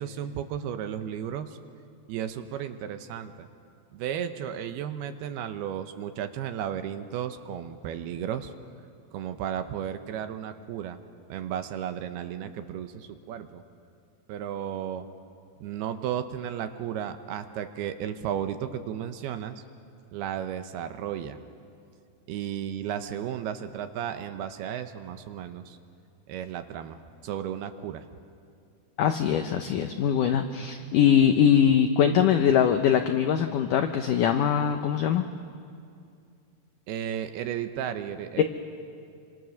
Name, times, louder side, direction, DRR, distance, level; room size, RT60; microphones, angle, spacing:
voice 1, 0.0-1.6 2.1-3.5 3.9-8.5 9.1-11.0 11.3-13.6 14.3-15.1 15.6-19.6 20.1-21.4 22.3-25.8 26.3-28.1 30.6-30.9 36.9-38.4, right 9 dB, 75° right, 8 dB, 2.8 m, -34 dB
voice 2, 29.0-35.2 38.4-38.5, left 8 dB, 85° left, 6 dB, 1.8 m, -22 dB
27.0 x 25.5 x 6.4 m, 2.4 s
omnidirectional pair, 4.8 m